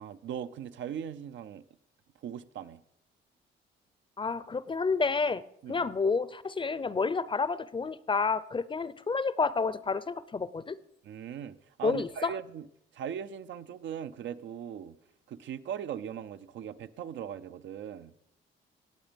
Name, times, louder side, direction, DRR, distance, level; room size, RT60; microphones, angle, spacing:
voice 1, 0.0-1.6 2.2-2.8 5.6-5.9 11.0-12.7 12.9-15.0 15.3-18.1, right 9 dB, 70° right, 11 dB, 0.6 m, -39 dB
voice 2, 4.2-5.4 5.7-10.8 11.8-12.3, left 4 dB, 25° left, 17 dB, 0.6 m, -29 dB
17.5 x 8.0 x 5.2 m, 0.77 s
cardioid pair, 90°, 20 cm